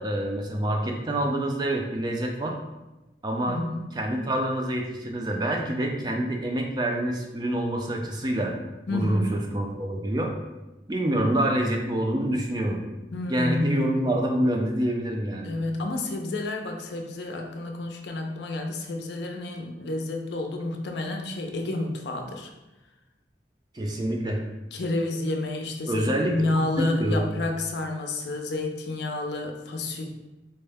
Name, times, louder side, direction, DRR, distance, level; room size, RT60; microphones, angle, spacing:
voice 1, 0.0-2.6 3.2-3.6 3.9-8.5 8.9-10.3 10.9-12.8 13.3-15.5 23.7-24.4 25.9-27.2, right 1 dB, 25° right, 1 dB, 0.4 m, -26 dB
voice 2, 3.5-3.9 8.9-9.3 13.1-14.1 15.4-22.5 24.7-30.1, left 2 dB, 75° left, 3 dB, 0.5 m, -30 dB
4.3 x 2.1 x 3.3 m, 1.0 s
head